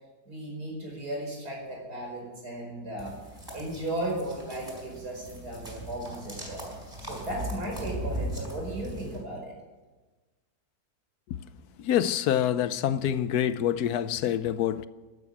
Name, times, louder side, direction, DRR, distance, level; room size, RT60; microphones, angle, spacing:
voice 1, 0.3-3.2 3.5-6.6 7.0-9.5, right 1 dB, 80° right, 5.5 m, -35 dB
sound 1, 3.0-9.2, equal, 15° right, 5.1 m, -38 dB
voice 2, 11.8-14.9, left 10 dB, 80° left, 1.2 m, -26 dB
13.0 x 12.0 x 8.5 m
omnidirectional pair, 1.7 m